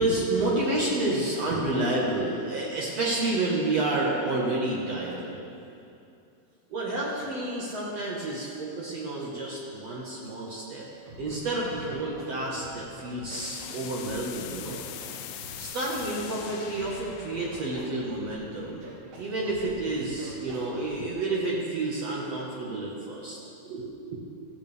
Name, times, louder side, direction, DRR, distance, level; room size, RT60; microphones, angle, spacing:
voice 1, 0.0-5.3 6.7-10.8 11.2-14.8 15.6-18.8 19.2-23.4 23.6-24.2, right 2 dB, 55° right, -5 dB, 2.5 m, -29 dB
Scratching (performance technique), 11.1-11.4 11.6-12.8 13.1-14.2 14.5-15.6 15.9-17.0 17.3-18.3 18.6-19.2 19.5-19.7 20.0-20.8, right 1 dB, 90° right, 3.8 m, -45 dB
sound 1, 13.3-19.0, left 11 dB, 90° left, 2.2 m, -42 dB
16.0 x 14.0 x 3.5 m, 2.6 s
omnidirectional pair, 3.6 m